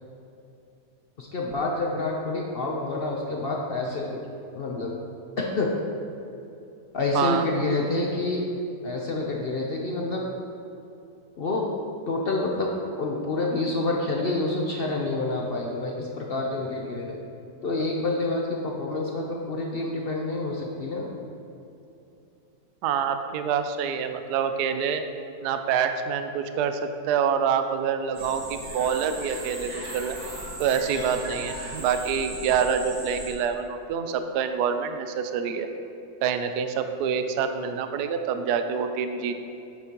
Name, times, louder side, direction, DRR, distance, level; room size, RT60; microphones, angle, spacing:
voice 1, 1.2-4.2 4.5-5.0 5.4-5.8 6.9-8.5 8.8-10.2 11.4-11.7 12.1-12.7 13.0-17.2 17.6-21.1, left 2 dB, 60° left, -1 dB, 0.6 m, -28 dB
voice 2, 22.8-25.0 25.4-30.2 30.6-35.7 36.2-39.3, right 7 dB, 75° right, 8 dB, 1.1 m, -26 dB
sound 1, 28.1-33.3, right 1 dB, 60° right, 1.9 m, -37 dB
8.8 x 7.9 x 2.9 m, 2.8 s
omnidirectional pair, 1.9 m